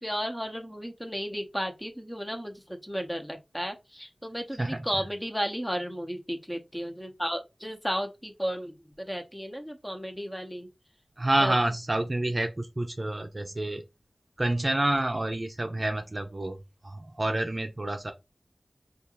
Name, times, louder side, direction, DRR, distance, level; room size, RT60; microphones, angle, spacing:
voice 1, 0.0-10.7 11.4-11.5, equal, 10° left, 1.0 m, -34 dB
voice 2, 11.2-13.8 14.4-16.6 16.8-18.1, right 1 dB, 40° right, 0.6 m, -28 dB
5.1 x 2.5 x 3.0 m
wide cardioid pair, 60°, 0 cm